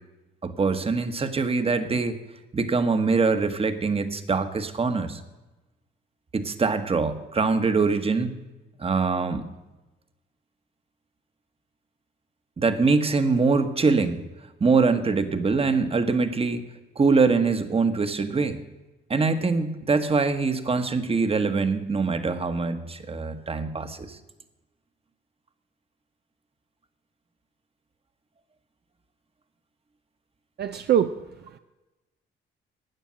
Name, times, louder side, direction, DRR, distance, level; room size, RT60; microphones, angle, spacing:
voice 1, 0.4-2.2 2.5-5.2 6.3-8.3 8.8-9.5 12.6-14.2 14.6-16.6 17.0-18.6 19.1-24.2, right 4 dB, 30° right, 10 dB, 1.2 m, -23 dB
voice 2, 30.6-31.6, right 9 dB, 55° right, 8 dB, 0.6 m, -25 dB
13.5 x 9.1 x 7.6 m, 1.1 s
cardioid pair, 90°, 20 cm